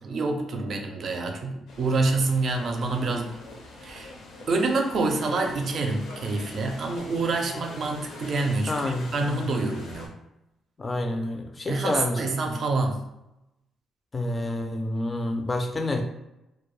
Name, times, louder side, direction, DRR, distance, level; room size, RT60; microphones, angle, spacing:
voice 1, 0.0-3.4 3.8-4.1 4.5-10.1 11.7-13.0, right 3 dB, 55° right, 4 dB, 0.4 m, -27 dB
sound 1, 1.7-10.1, left 2 dB, 80° left, 0.5 m, -44 dB
voice 2, 8.7-9.6 10.8-12.2 12.5-12.6 14.1-16.0, left 2 dB, 25° left, 4 dB, 0.3 m, -28 dB
2.1 x 2.1 x 3.0 m, 0.90 s
cardioid pair, 90°, 0 cm